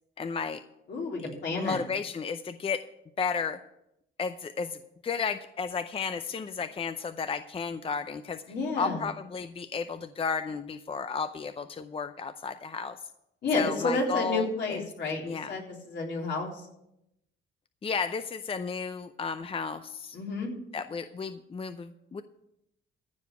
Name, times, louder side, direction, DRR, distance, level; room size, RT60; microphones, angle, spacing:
voice 1, 0.2-0.6 1.2-1.3 1.6-2.8 3.2-3.6 4.2-4.8 5.0-8.4 8.8-13.0 13.5-14.8 15.2-15.6 17.8-20.2 20.7-22.2, left 5 dB, 30° left, 10 dB, 0.6 m, -33 dB
voice 2, 0.9-1.8 8.5-9.0 13.4-16.5 20.1-20.5, left 3 dB, 65° left, -1 dB, 3.6 m, -30 dB
14.5 x 5.1 x 7.9 m, 0.82 s
cardioid pair, 90°, 20 cm